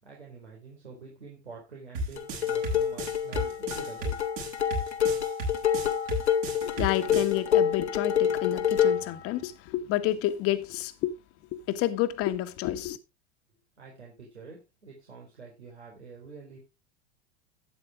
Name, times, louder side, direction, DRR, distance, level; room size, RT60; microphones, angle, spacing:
voice 1, 0.0-4.2 13.8-16.6, right 4 dB, 85° right, 4.2 m, -47 dB
sound 1, 1.9-7.3, right 1 dB, 60° right, 7.4 m, -33 dB
sound 2, 2.2-9.1, left 8 dB, 85° left, 1.5 m, -27 dB
voice 2, 6.6-11.1 11.5-13.0, left 13 dB, 45° left, 1.4 m, -29 dB
12.5 x 9.2 x 3.6 m
hypercardioid pair, 90°, 33 cm